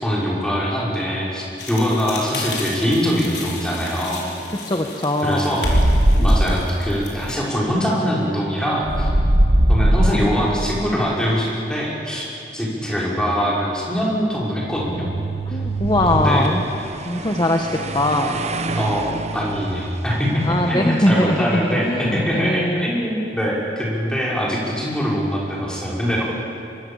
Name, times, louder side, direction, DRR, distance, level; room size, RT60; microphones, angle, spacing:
voice 1, 0.0-4.2 5.2-5.7 6.1-9.1 9.7-12.3 12.5-15.1 15.5-15.6 16.1-16.5 18.7-26.2, equal, 5° left, -5 dB, 5.9 m, -23 dB
sound 1, 1.6-7.3, left 3 dB, 70° left, 4.7 m, -34 dB
voice 2, 4.7-5.5 15.5-16.6 17.0-17.7 17.9-18.4 20.4-23.1, left 1 dB, 25° left, 3 dB, 1.3 m, -21 dB
sound 2, 5.6-6.6 8.8-10.5 14.6-16.2, right 1 dB, 75° right, 1.8 m, -18 dB
sound 3, 15.9-22.0, right 2 dB, 40° right, 1.1 m, -31 dB
24.0 x 24.0 x 7.3 m, 2.6 s
head